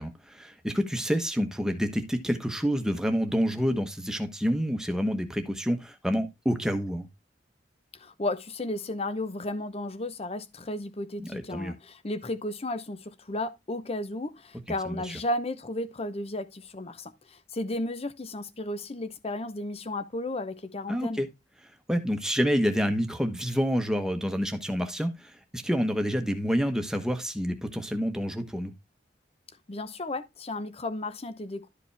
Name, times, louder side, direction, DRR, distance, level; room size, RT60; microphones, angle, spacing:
voice 1, 0.0-7.1 11.2-11.8 14.8-15.2 20.9-21.3 21.9-28.7, equal, 5° right, 1.1 m, -28 dB
voice 2, 7.9-21.2 29.7-31.7, left 1 dB, 35° left, 0.8 m, -34 dB
12.0 x 5.0 x 3.3 m
head